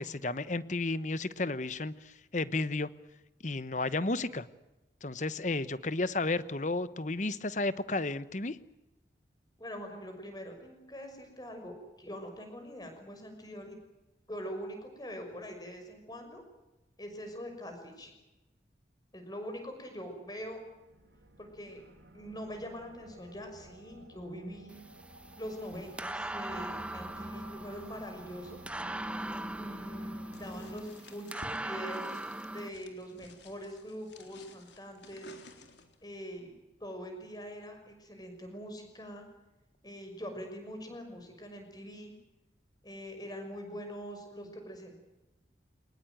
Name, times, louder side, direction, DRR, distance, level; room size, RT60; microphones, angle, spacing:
voice 1, 0.0-2.9 3.4-4.5 5.0-8.6, left 2 dB, 40° left, 15 dB, 1.0 m, -32 dB
voice 2, 9.6-13.8 14.3-16.4 17.0-18.1 19.1-20.6 21.4-21.8 22.1-24.9 25.4-28.6 29.6-32.2 32.5-35.4 36.0-36.5 36.8-39.2 39.8-42.1 42.8-45.0, equal, 20° left, 5 dB, 6.0 m, -43 dB
sound 1, 20.2-30.8, right 1 dB, 85° right, 4.1 m, -53 dB
sound 2, 24.7-32.7, right 1 dB, 5° right, 1.0 m, -40 dB
sound 3, 30.3-36.0, left 3 dB, 80° left, 3.7 m, -54 dB
23.5 x 20.5 x 9.3 m, 1.0 s
head